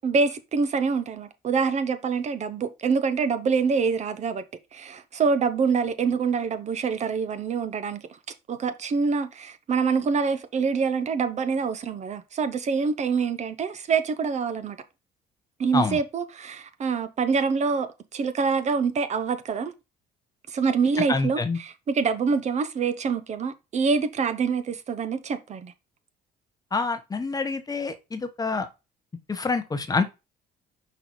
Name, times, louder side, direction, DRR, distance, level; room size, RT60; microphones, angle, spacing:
voice 1, 0.0-4.4 4.7-8.0 8.5-14.8 15.6-19.7 20.5-25.7, right 5 dB, 40° right, 0.8 m, -25 dB
voice 2, 21.1-21.6 26.7-28.7 29.3-30.0, left 4 dB, 20° left, 1.0 m, -27 dB
5.7 x 4.0 x 4.6 m
cardioid pair, 110°, 17 cm